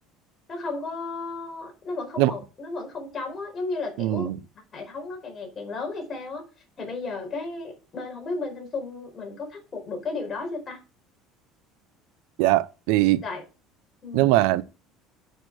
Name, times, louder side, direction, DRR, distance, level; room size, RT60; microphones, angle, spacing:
voice 1, 0.5-4.3 4.7-6.4 6.8-10.8 13.2-13.4 14.0-14.3, left 3 dB, 25° left, 4.6 m, -34 dB
voice 2, 4.0-4.4 12.4-13.2 14.1-14.6, right 16 dB, 80° right, 0.6 m, -21 dB
9.1 x 6.5 x 6.4 m
cardioid pair, 160°, 0 cm